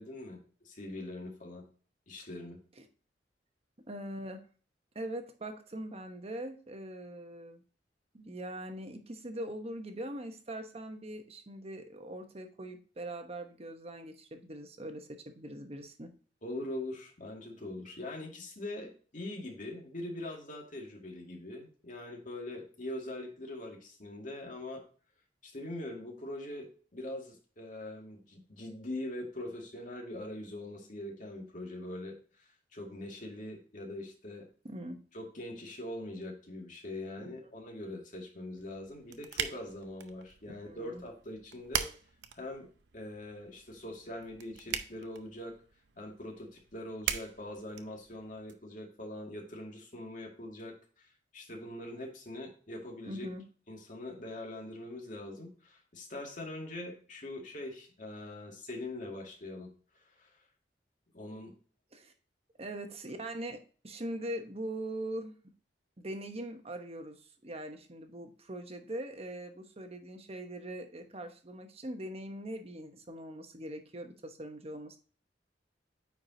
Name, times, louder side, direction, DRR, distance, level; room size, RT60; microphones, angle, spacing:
voice 1, 0.0-1.7 2.1-2.6 16.4-24.8 25.4-32.4 32.7-34.5 35.1-41.9 42.3-42.7 42.9-45.5 46.0-53.3 53.7-60.4 61.1-61.5, left 1 dB, 50° left, 0 dB, 2.1 m, -42 dB
voice 2, 3.9-4.4 4.9-7.6 8.1-16.1 34.6-35.0 37.2-37.5 40.5-41.0 53.1-53.4 61.9-62.1 62.6-65.3 66.0-75.0, right 1 dB, 35° right, 6 dB, 1.0 m, -42 dB
sound 1, 38.6-48.5, right 8 dB, 75° right, 0.6 m, -42 dB
9.1 x 4.8 x 2.7 m, 0.40 s
head